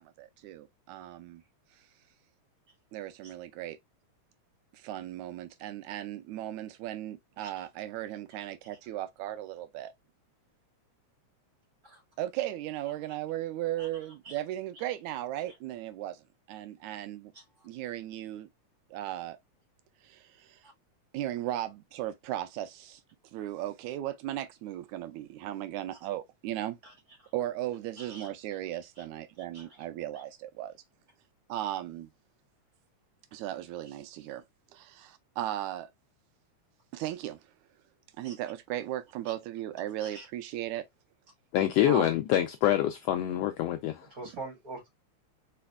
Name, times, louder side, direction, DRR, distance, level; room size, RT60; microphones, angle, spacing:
voice 1, 0.0-1.4 2.9-3.8 4.7-9.9 12.2-16.2 16.5-17.3 17.6-18.5 18.9-19.4 20.0-20.6 21.1-23.0 23.3-26.8 27.3-30.7 31.5-32.1 33.3-34.4 34.7-35.9 36.9-37.4 38.2-40.9 41.9-42.1, right 13 dB, 85° right, 2.0 m, -36 dB
voice 2, 17.3-17.7 20.6-20.7 26.8-26.9 27.2-27.3 28.0-28.3 29.0-29.1 29.5-29.7 30.1-30.2 38.2-38.4 40.0-40.3 44.1-44.9, right 2 dB, 30° right, 3.6 m, -45 dB
voice 3, 41.5-44.0, left 12 dB, 80° left, 1.4 m, -26 dB
4.8 x 4.2 x 2.3 m
omnidirectional pair, 3.3 m